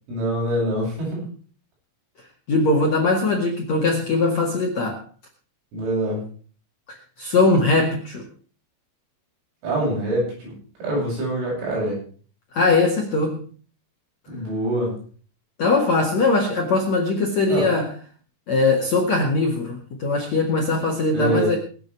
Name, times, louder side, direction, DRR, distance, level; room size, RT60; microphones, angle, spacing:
voice 1, 0.1-1.2 5.7-6.2 9.6-10.5 10.8-12.0 14.3-15.0 17.5-17.7 21.1-21.5, right 1 dB, 70° right, -4 dB, 10.5 m, -25 dB
voice 2, 2.5-5.0 7.2-8.3 12.5-13.4 15.6-17.9 18.5-21.6, left 3 dB, 50° left, 0 dB, 2.3 m, -20 dB
23.0 x 8.1 x 4.7 m, 0.42 s
omnidirectional pair, 5.7 m